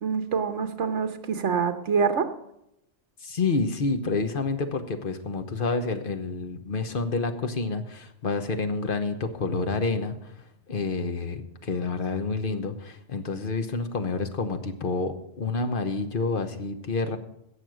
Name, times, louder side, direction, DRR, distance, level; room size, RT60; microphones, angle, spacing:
voice 1, 0.0-2.3, right 6 dB, 75° right, 8 dB, 1.4 m, -26 dB
voice 2, 3.2-10.4 10.7-17.2, left 3 dB, 45° left, 7 dB, 1.2 m, -28 dB
17.0 x 6.4 x 6.4 m, 0.80 s
omnidirectional pair, 1.2 m